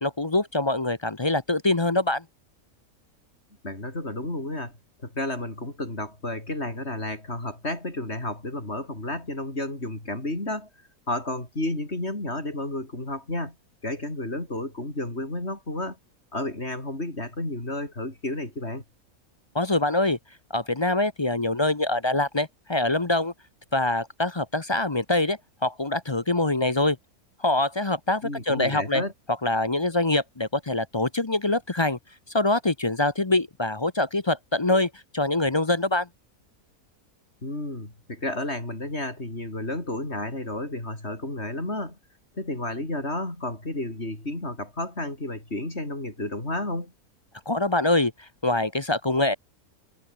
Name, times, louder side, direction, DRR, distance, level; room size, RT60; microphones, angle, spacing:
voice 1, 0.0-2.2 19.5-20.2 20.5-23.3 23.7-27.0 27.4-29.0 29.4-32.0 32.3-36.1 47.5-48.1 48.4-49.4, left 2 dB, 25° left, 0.7 m, -24 dB
voice 2, 3.6-4.7 5.0-10.7 11.1-13.5 13.8-16.0 16.3-18.8 28.2-29.1 37.4-42.0 42.3-46.9, left 1 dB, 45° left, 6.5 m, -31 dB
omnidirectional pair, 1.5 m